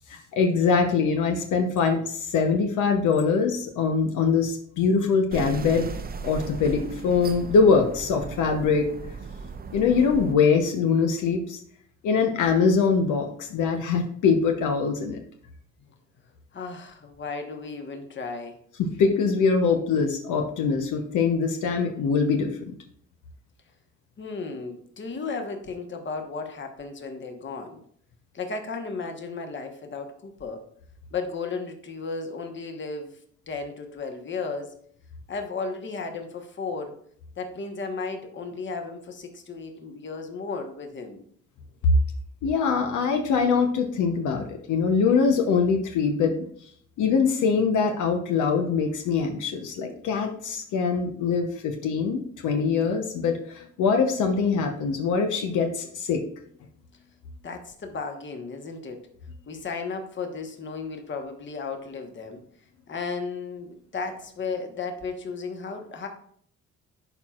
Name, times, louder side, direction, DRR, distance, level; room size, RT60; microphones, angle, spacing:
voice 1, 0.1-5.9 6.2-8.9 9.7-11.6 12.0-15.2 18.8-22.5 42.4-46.3 47.0-56.2, left 5 dB, 80° left, 4 dB, 0.9 m, -23 dB
sound 1, 5.3-10.3, right 5 dB, 30° right, 0.6 m, -37 dB
voice 2, 16.5-18.6 24.2-27.8 28.3-30.6 31.1-33.2 33.5-34.8 35.3-37.0 37.4-41.2 57.4-59.1 59.5-62.4 62.9-66.1, left 4 dB, 40° left, 4 dB, 1.2 m, -34 dB
11.0 x 4.4 x 2.4 m, 0.63 s
cardioid pair, 90°, 30 cm